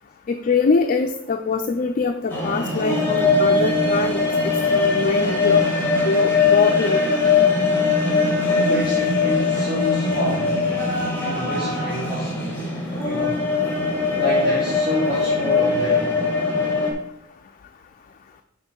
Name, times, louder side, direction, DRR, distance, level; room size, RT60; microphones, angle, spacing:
voice 1, 0.3-5.7 6.0-7.0, left 4 dB, 40° left, 5 dB, 0.4 m, -23 dB
sound 1, 2.3-16.9, left 4 dB, 10° left, 1.9 m, -21 dB
voice 2, 8.3-10.7 11.1-12.7 13.0-13.5 14.1-16.1, equal, 35° right, -13 dB, 3.1 m, -29 dB
6.7 x 4.3 x 5.4 m, 0.82 s
head